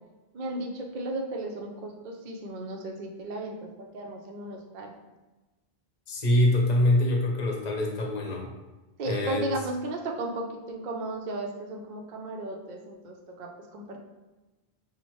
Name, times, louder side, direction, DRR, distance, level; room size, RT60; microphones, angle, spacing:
voice 1, 0.3-4.9 9.0-14.0, right 2 dB, 55° right, 0 dB, 0.6 m, -35 dB
voice 2, 6.1-8.5 9.0-9.5, left 1 dB, 50° left, 0 dB, 0.8 m, -24 dB
5.8 x 2.1 x 3.0 m, 1.1 s
omnidirectional pair, 1.1 m